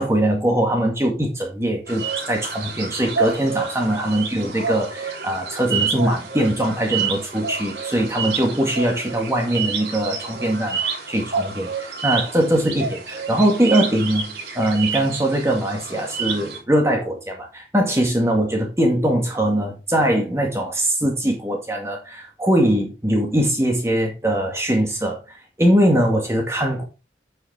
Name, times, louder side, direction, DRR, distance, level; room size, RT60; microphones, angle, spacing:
voice 1, 0.0-26.8, right 1 dB, 15° right, 1 dB, 2.0 m, -21 dB
sound 1, 1.9-16.6, right 5 dB, 70° right, 3.6 m, -29 dB
8.8 x 6.8 x 3.6 m, 0.27 s
head